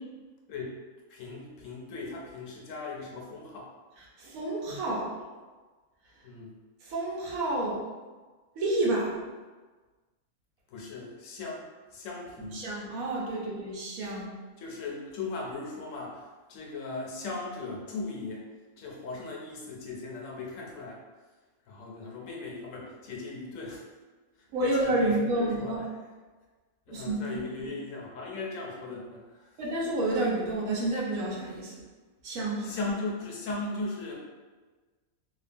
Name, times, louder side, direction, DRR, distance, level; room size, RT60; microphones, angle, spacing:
voice 1, 1.1-3.7 6.2-6.6 10.7-11.6 11.9-12.6 14.6-18.5 18.8-21.0 21.7-23.9 24.4-25.7 26.9-29.6 32.6-34.1, left 3 dB, 70° left, -2 dB, 1.0 m, -38 dB
voice 2, 4.2-5.1 6.9-7.8 8.6-9.2 12.5-14.3 24.5-25.8 26.9-27.2 27.6-27.7 29.6-31.7 32.2-32.8, right 2 dB, 90° right, -4 dB, 1.2 m, -29 dB
2.8 x 2.2 x 2.5 m, 1.3 s
omnidirectional pair, 1.4 m